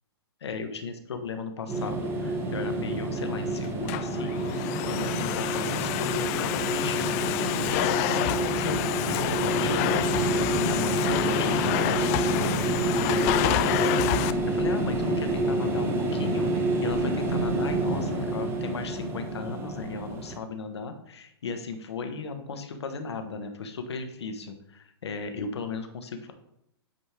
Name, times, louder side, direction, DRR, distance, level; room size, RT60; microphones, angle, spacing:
voice 1, 0.4-8.8 9.1-26.3, left 4 dB, 80° left, 6 dB, 1.1 m, -36 dB
sound 1, 1.7-20.4, right 2 dB, 15° right, 1.0 m, -28 dB
Domestic sounds home sounds, 3.6-14.3, left 14 dB, 35° left, 0.3 m, -28 dB
8.6 x 4.4 x 3.4 m, 0.77 s
hypercardioid pair, 125°, 14 cm